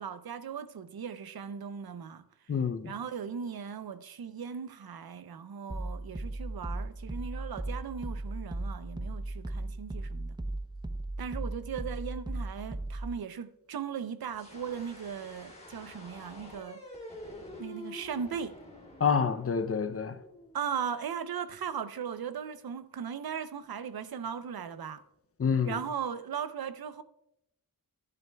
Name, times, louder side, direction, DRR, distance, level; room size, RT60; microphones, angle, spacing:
voice 1, 0.0-2.2 2.8-10.4 11.2-16.8 17.6-18.5 20.5-25.0 25.6-27.0, right 7 dB, 80° right, 0.6 m, -38 dB
voice 2, 2.5-2.9 19.0-20.2 25.4-25.8, left 6 dB, 40° left, 0.5 m, -28 dB
sound 1, 5.7-13.2, right 2 dB, 10° right, 0.4 m, -37 dB
sound 2, 14.3-21.1, left 1 dB, 15° left, 2.5 m, -48 dB
12.0 x 10.5 x 2.2 m
wide cardioid pair, 110°, 36 cm